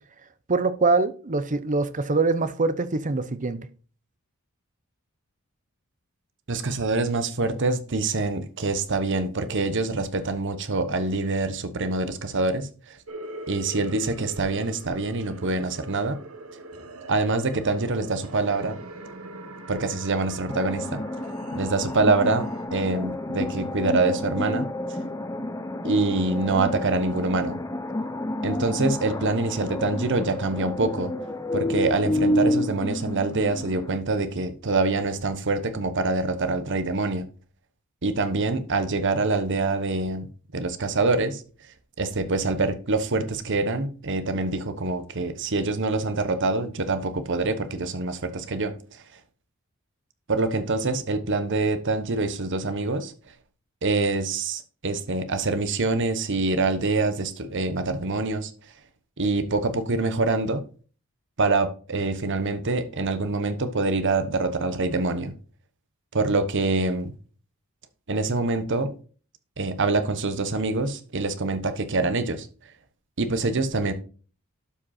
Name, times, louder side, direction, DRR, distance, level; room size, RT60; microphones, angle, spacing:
voice 1, 0.5-3.6, right 3 dB, 35° right, 0.8 m, -23 dB
voice 2, 6.5-13.0 13.5-16.2 17.1-18.8 19.7-21.0 21.5-25.0 25.8-27.6 28.4-31.1 31.5-37.3 38.0-40.3 40.5-41.4 42.0-49.0 50.3-53.1 53.8-58.5 59.2-60.6 61.4-65.4 66.1-67.1 68.1-68.9 69.6-72.5 73.2-73.9, right 3 dB, 60° right, 1.1 m, -25 dB
sound 1, 13.1-22.7, right 2 dB, 75° right, 1.5 m, -42 dB
sound 2, 20.5-34.0, left 1 dB, 15° left, 0.8 m, -29 dB
12.0 x 5.2 x 4.3 m
head